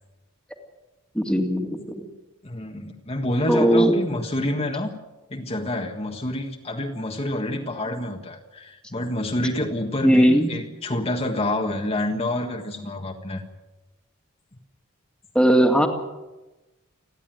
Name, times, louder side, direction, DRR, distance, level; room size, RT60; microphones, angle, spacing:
voice 1, 1.1-2.1 3.5-4.0 10.0-10.5 15.3-15.9, equal, 5° left, 3 dB, 2.3 m, -18 dB
voice 2, 2.4-4.9 5.3-13.4, left 1 dB, 30° left, 1 dB, 1.6 m, -28 dB
29.5 x 11.5 x 9.2 m, 1.1 s
head